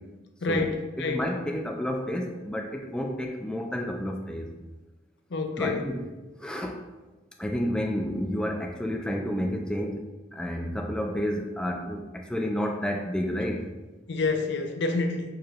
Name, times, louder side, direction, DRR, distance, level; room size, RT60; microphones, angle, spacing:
voice 1, 0.4-1.3 5.3-5.9 14.1-15.2, left 3 dB, 65° left, 5 dB, 0.5 m, -28 dB
voice 2, 1.0-4.5 5.6-6.0 6.4-6.8 7.4-13.7, equal, 5° left, 2 dB, 0.3 m, -30 dB
4.7 x 4.5 x 2.4 m, 1.2 s
head